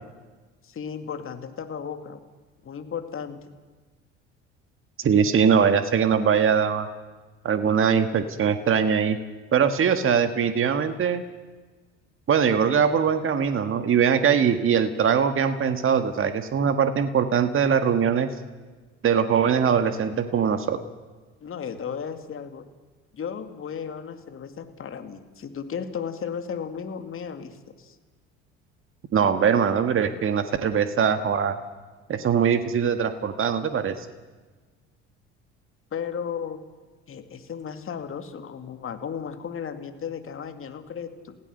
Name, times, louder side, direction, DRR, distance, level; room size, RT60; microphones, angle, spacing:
voice 1, 0.6-2.2 2.6-3.4 21.4-22.7 23.1-28.0 35.9-36.6 37.1-41.4, left 7 dB, 40° left, 8 dB, 2.4 m, -35 dB
voice 2, 5.0-6.9 7.4-9.2 9.5-11.2 12.3-18.3 19.0-20.8 29.1-31.6 32.1-34.1, right 7 dB, 40° right, 9 dB, 1.7 m, -22 dB
29.0 x 16.5 x 6.7 m, 1.3 s
hypercardioid pair, 65°, 33 cm